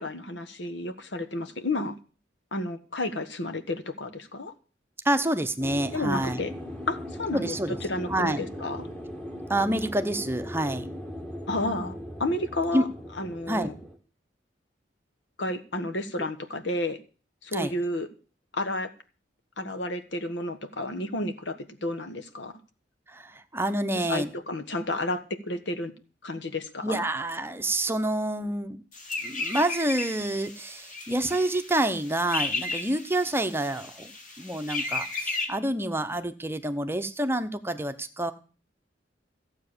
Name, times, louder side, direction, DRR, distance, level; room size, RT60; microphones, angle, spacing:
voice 1, 0.0-1.9 2.5-4.5 5.9-6.5 6.9-7.5 7.8-8.9 11.5-12.9 13.2-13.8 15.4-17.0 17.4-18.1 18.5-18.9 19.6-22.5 24.1-25.9 26.2-27.0, left 1 dB, 75° left, 8 dB, 1.5 m, -31 dB
voice 2, 5.0-6.4 7.3-7.8 8.1-8.4 9.5-10.9 12.7-12.8 13.5-13.7 16.2-16.3 17.5-17.7 23.1-24.3 26.8-28.8 29.2-34.1 34.4-38.3, right 1 dB, 15° right, 8 dB, 0.9 m, -28 dB
sound 1, 5.6-14.0, equal, 5° left, 1.8 m, -39 dB
sound 2, 28.9-35.5, left 3 dB, 45° left, 2.5 m, -34 dB
15.0 x 8.1 x 6.8 m, 0.37 s
head